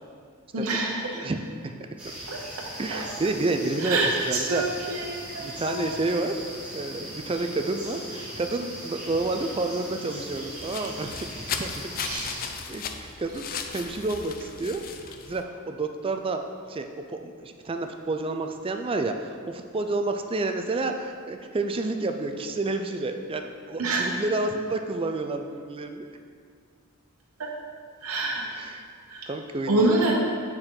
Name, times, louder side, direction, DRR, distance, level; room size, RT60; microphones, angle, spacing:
voice 1, 0.5-1.2 2.3-2.4 2.9-3.0 3.8-5.9 12.0-12.3 23.8-24.1 27.4-27.5 28.0-28.5 29.1-29.3 29.7-30.1, right 2 dB, 85° right, -2 dB, 0.9 m, -26 dB
voice 2, 1.1-1.7 2.8-4.6 5.3-6.3 6.7-11.3 11.5-12.4 12.7-13.5 13.7-16.4 16.7-26.1 28.5-28.8 29.3-30.1, right 2 dB, 25° right, 5 dB, 0.4 m, -30 dB
sound 1, 2.0-12.5, right 1 dB, 5° right, 1.9 m, -39 dB
sound 2, 10.3-15.4, left 6 dB, 40° left, 0.4 m, -36 dB
8.8 x 4.5 x 3.8 m, 2.1 s
head